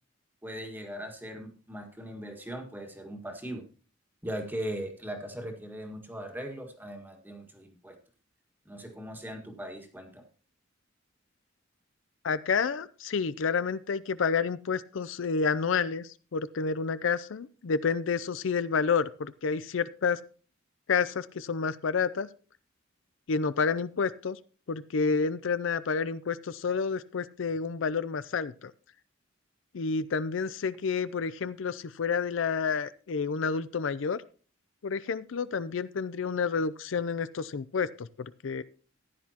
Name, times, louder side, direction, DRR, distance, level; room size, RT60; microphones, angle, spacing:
voice 1, 0.4-3.6 4.2-8.0 8.7-10.2, right 1 dB, 10° right, 4 dB, 1.7 m, -39 dB
voice 2, 12.2-20.2 20.9-22.3 23.3-24.4 24.7-28.7 29.7-34.2 34.8-38.6, left 5 dB, 75° left, 15 dB, 0.5 m, -29 dB
15.0 x 10.5 x 2.9 m, 0.39 s
head